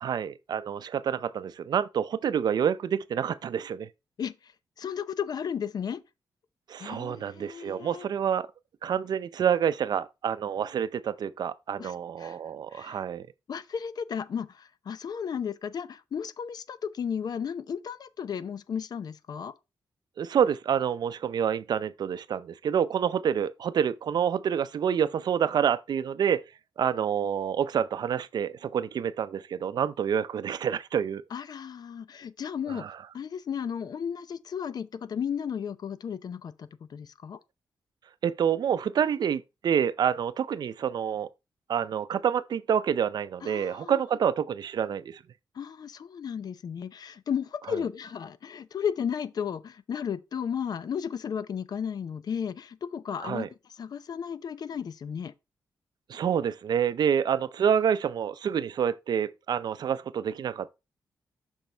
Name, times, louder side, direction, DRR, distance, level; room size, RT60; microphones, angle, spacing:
voice 1, 0.0-3.9 6.7-8.5 8.8-13.3 20.2-26.4 26.8-31.2 32.7-32.9 38.2-41.3 41.7-45.2 53.2-53.5 56.1-60.7, right 8 dB, 65° right, 0.5 m, -27 dB
voice 2, 4.2-4.5 4.8-6.0 6.8-8.1 11.8-12.4 12.7-13.0 13.5-19.5 31.3-32.9 33.1-37.4 43.4-44.0 45.5-53.5 53.7-55.3, left 7 dB, 60° left, 0.7 m, -34 dB
6.4 x 6.1 x 3.3 m
cardioid pair, 90°, 8 cm